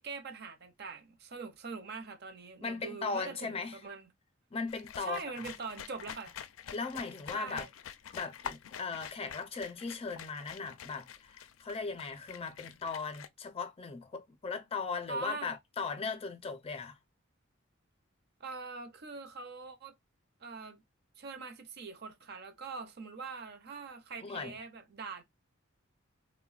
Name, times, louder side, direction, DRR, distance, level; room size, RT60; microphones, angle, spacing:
voice 1, 0.0-4.1 5.0-6.3 7.3-7.7 15.1-15.5 18.4-19.9 20.4-20.8 21.2-25.2, right 4 dB, 55° right, 0.6 m, -43 dB
voice 2, 2.6-3.8 4.5-5.2 6.7-7.7 8.1-17.0 24.2-24.6, left 4 dB, 30° left, 0.5 m, -38 dB
sound 1, 4.7-13.3, left 8 dB, 90° left, 0.4 m, -47 dB
3.3 x 2.1 x 2.3 m
head